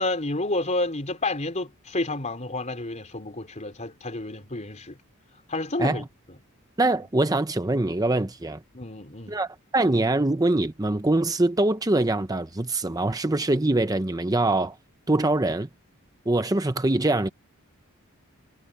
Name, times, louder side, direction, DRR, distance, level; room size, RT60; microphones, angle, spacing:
voice 1, 0.0-5.0 5.5-6.1 8.7-9.4, left 2 dB, 35° left, 4.0 m, -30 dB
voice 2, 6.8-8.6 9.3-9.5 9.7-14.8 15.1-15.7 16.3-17.3, right 2 dB, 15° right, 0.7 m, -23 dB
head